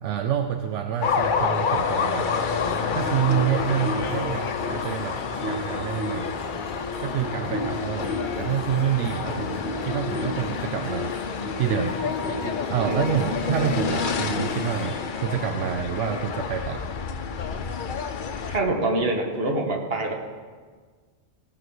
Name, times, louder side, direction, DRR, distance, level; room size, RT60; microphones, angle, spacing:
voice 1, 0.0-2.4 2.9-6.3 7.0-8.1 8.4-11.1 11.6-12.0 12.7-16.9, right 9 dB, 80° right, 6 dB, 0.9 m, -28 dB
sound 1, 1.0-18.6, left 6 dB, 50° left, 0.8 m, -29 dB
sound 2, 2.3-15.0, left 1 dB, 5° right, 2.2 m, -34 dB
voice 2, 3.7-4.0 12.4-13.2 17.9-18.0 18.5-20.1, right 2 dB, 55° right, 2 dB, 1.6 m, -27 dB
17.0 x 5.9 x 6.3 m, 1.5 s
omnidirectional pair, 1.2 m